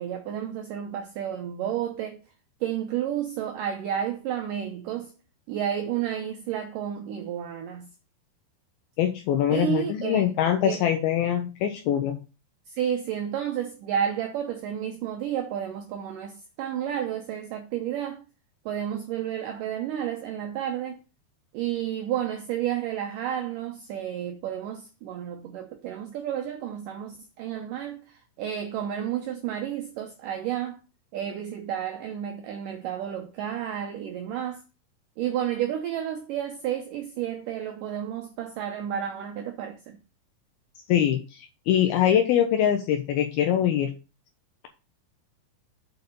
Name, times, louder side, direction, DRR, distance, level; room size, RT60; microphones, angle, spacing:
voice 1, 0.0-2.2 2.6-5.1 5.5-7.9 9.5-10.2 10.7-10.8 12.7-18.2 18.7-21.0 21.5-30.8 31.1-34.6 35.2-40.0, right 10 dB, 80° right, 2.0 m, -31 dB
voice 2, 9.0-12.2 40.9-43.9, left 10 dB, 80° left, 2.5 m, -23 dB
7.9 x 4.7 x 5.2 m
omnidirectional pair, 4.7 m